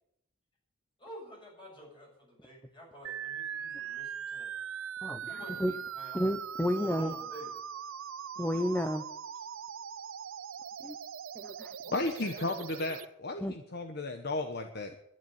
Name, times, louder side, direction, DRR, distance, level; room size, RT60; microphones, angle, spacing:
voice 1, 1.0-4.5 5.2-6.2 6.7-7.5 11.8-12.5, equal, 25° left, -2 dB, 7.5 m, -49 dB
sound 1, 3.0-13.0, right 8 dB, 75° right, 0.6 m, -41 dB
voice 2, 5.0-5.7 6.1-7.1 8.4-9.0 10.8-11.0 11.3-11.8 13.4-13.5, equal, 10° left, 7 dB, 0.7 m, -31 dB
voice 3, 11.9-15.0, left 2 dB, 50° left, 6 dB, 1.1 m, -34 dB
11.5 x 11.0 x 9.3 m, 0.77 s
head